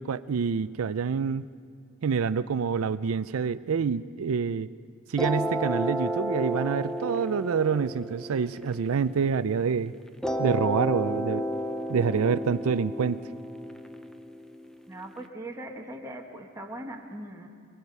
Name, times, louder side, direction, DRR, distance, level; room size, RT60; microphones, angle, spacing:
voice 1, 0.0-1.4 2.0-4.7 5.1-9.9 10.4-11.5 11.9-13.2, right 6 dB, 65° right, 14 dB, 0.4 m, -27 dB
sound 1, 5.2-9.6 10.2-15.2, right 1 dB, 5° left, 0.6 m, -32 dB
voice 2, 14.9-17.5, right 1 dB, 15° right, 0 dB, 1.4 m, -40 dB
22.0 x 21.5 x 5.4 m, 2.2 s
head